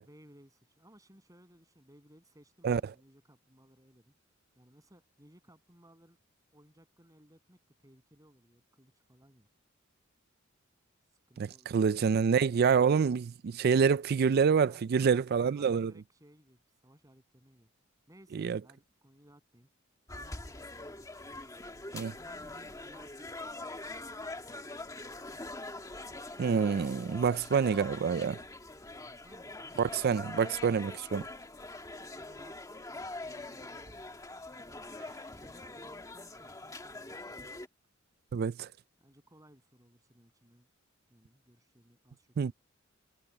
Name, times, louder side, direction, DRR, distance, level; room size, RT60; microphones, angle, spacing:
voice 1, 0.0-4.1 4.6-6.2 6.5-9.5 11.3-12.1 14.5-17.7 18.1-19.7 20.1-21.1 21.9-23.5 29.0-29.8 32.1-32.6 32.9-33.9 34.5-34.8 35.3-37.5 39.0-40.7 41.1-42.5, right 1 dB, 15° right, 7.8 m, -60 dB
voice 2, 11.4-15.9 18.3-18.6 21.9-22.1 26.4-28.4 29.8-31.2 38.3-38.7 42.4-42.5, right 6 dB, 50° right, 0.3 m, -27 dB
sound 1, 20.1-37.7, left 2 dB, 15° left, 1.9 m, -44 dB
head